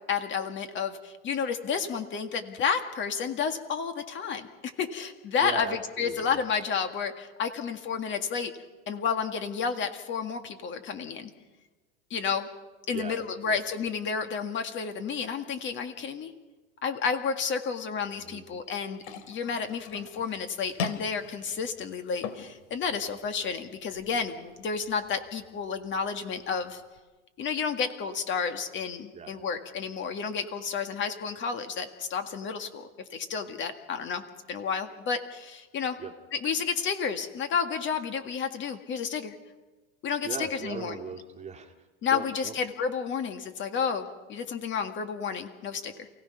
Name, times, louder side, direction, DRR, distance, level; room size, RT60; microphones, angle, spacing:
voice 1, 0.1-8.5 8.9-11.3 12.1-12.5 12.9-16.3 16.8-26.8 27.4-34.2 34.5-36.0 36.3-39.4 40.0-41.0 42.0-46.1, left 6 dB, 30° left, 7 dB, 1.9 m, -31 dB
voice 2, 5.4-6.4 12.9-13.2 13.4-13.6 18.2-18.4 29.1-29.3 36.0-36.1 40.2-42.6, right 6 dB, 20° right, 3 dB, 2.1 m, -38 dB
sound 1, 19.0-27.0, left 6 dB, 60° left, 2.6 m, -42 dB
28.5 x 17.5 x 5.8 m, 1.2 s
hypercardioid pair, 125°, 37 cm